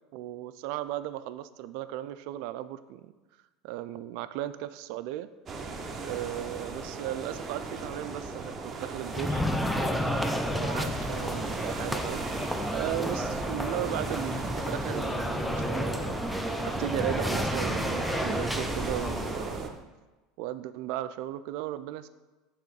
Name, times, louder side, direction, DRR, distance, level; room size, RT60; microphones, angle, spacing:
voice 1, 0.1-3.1 3.6-5.3 6.0-9.4 9.8-19.8 20.4-22.1, right 13 dB, 65° right, 13 dB, 0.3 m, -36 dB
sound 1, 5.5-19.7, right 4 dB, 30° right, 0.7 m, -38 dB
sound 2, 9.1-19.7, equal, ahead, 0.5 m, -31 dB
6.8 x 3.6 x 4.7 m, 1.2 s
supercardioid pair, 105°, 0 cm